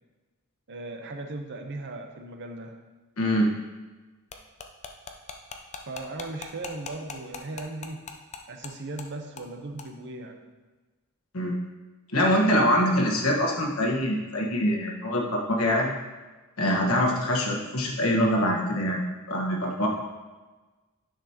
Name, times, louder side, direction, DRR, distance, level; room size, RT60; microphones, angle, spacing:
voice 1, 0.7-2.8 5.9-8.0 8.5-10.4, right 2 dB, 55° right, 4 dB, 0.8 m, -37 dB
voice 2, 3.2-3.5 11.3-11.5 12.1-15.9 16.6-19.0 19.3-19.9, equal, 85° left, -1 dB, 1.4 m, -24 dB
sound 1, 4.3-8.7 9.0-9.1 9.4-9.5 9.8-9.9, left 5 dB, 35° left, 0.5 m, -39 dB
9.9 x 6.2 x 2.9 m, 1.3 s
head